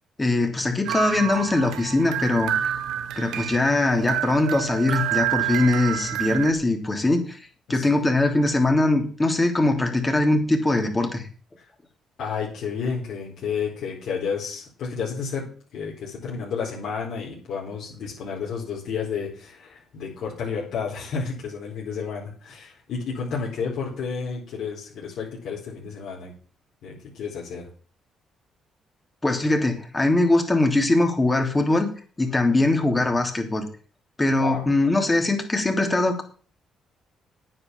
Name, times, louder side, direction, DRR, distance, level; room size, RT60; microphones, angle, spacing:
voice 1, 0.2-2.5 3.2-7.4 7.7-11.3 29.2-31.9 32.2-33.7 34.2-36.2, left 2 dB, 20° left, 5 dB, 3.2 m, -21 dB
sound 1, 0.8-6.5, right 12 dB, 85° right, 0.9 m, -28 dB
voice 2, 7.7-8.0 11.6-11.7 12.2-26.3 26.8-27.7 32.8-33.0 34.4-34.7, left 5 dB, 75° left, -5 dB, 4.6 m, -31 dB
9.6 x 7.9 x 7.4 m, 0.41 s
cardioid pair, 90°, 0 cm